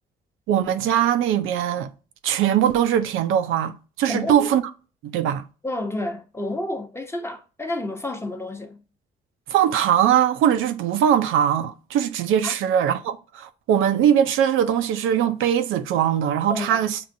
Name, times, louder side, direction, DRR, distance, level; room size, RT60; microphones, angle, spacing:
voice 1, 0.5-1.9 2.2-4.6 5.0-5.4 9.5-17.0, right 9 dB, 85° right, 0.5 m, -21 dB
voice 2, 4.1-4.5 5.6-8.8 12.4-12.5 16.5-16.8, left 1 dB, 15° left, 0.7 m, -30 dB
6.8 x 2.4 x 2.6 m
cardioid pair, 90°, 20 cm